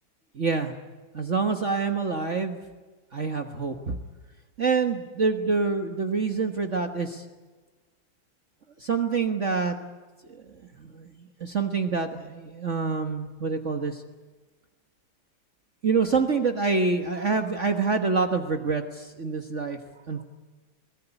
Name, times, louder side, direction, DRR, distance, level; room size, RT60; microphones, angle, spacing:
voice 1, 0.3-0.7 1.1-2.6 3.1-4.0 4.6-7.2 8.8-9.7 10.3-10.4 10.8-14.0 15.8-19.8 20.1-20.2, right 4 dB, 40° right, 5 dB, 1.5 m, -26 dB
22.5 x 19.0 x 9.9 m, 1.3 s
omnidirectional pair, 2.2 m